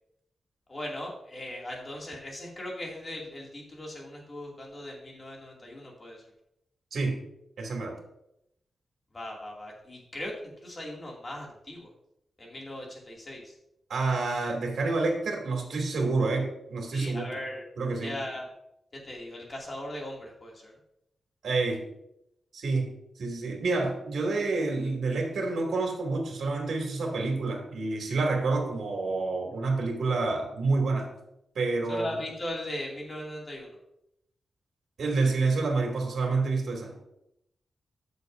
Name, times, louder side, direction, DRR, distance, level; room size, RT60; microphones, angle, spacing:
voice 1, 0.7-6.2 9.1-11.9 12.4-13.6 16.9-17.6 17.9-18.5 18.9-20.7 31.9-33.8, left 1 dB, 30° left, -2 dB, 2.5 m, -39 dB
voice 2, 7.6-7.9 13.9-17.3 17.8-18.2 21.4-21.8 22.5-22.9 23.2-31.1 31.5-32.1 35.0-37.0, right 3 dB, 75° right, 1 dB, 2.5 m, -28 dB
14.0 x 6.8 x 2.7 m, 0.81 s
wide cardioid pair, 125°, 0 cm